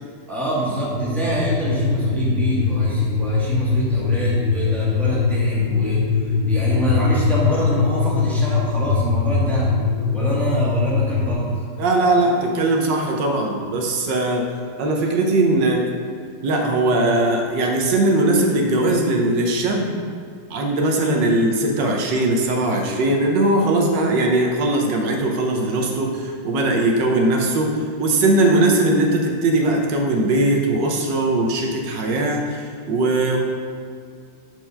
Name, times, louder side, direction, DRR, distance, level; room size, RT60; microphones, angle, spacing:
voice 1, 0.3-6.0 6.4-9.7 10.1-11.5, right 1 dB, ahead, -7 dB, 1.4 m, -25 dB
sound 1, 0.9-11.3, left 5 dB, 50° left, 1.5 m, -21 dB
voice 2, 11.8-14.4 14.8-15.8 16.4-20.0 20.5-33.4, right 2 dB, 80° right, 1 dB, 1.6 m, -20 dB
6.7 x 4.5 x 5.6 m, 2.1 s
omnidirectional pair, 1.9 m